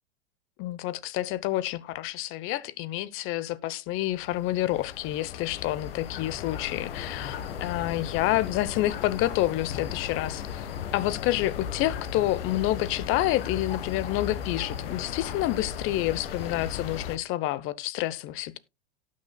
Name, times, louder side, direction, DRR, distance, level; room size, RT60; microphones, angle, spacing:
voice 1, 0.6-18.6, left 15 dB, 40° left, 0.9 m, -28 dB
sound 1, 4.0-17.2, left 8 dB, 65° left, 1.5 m, -36 dB
18.0 x 6.4 x 2.3 m
hypercardioid pair, 95°, 31 cm